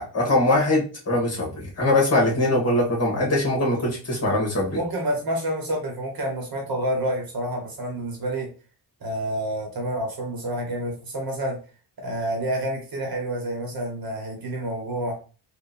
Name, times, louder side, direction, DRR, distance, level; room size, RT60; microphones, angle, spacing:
voice 1, 0.0-4.8, left 1 dB, 35° left, -3 dB, 1.8 m, -22 dB
voice 2, 4.7-8.5 9.0-11.6 12.0-15.2, right 1 dB, 55° right, 1 dB, 1.3 m, -28 dB
3.5 x 2.6 x 4.2 m, 0.35 s
wide cardioid pair, 140°, 43 cm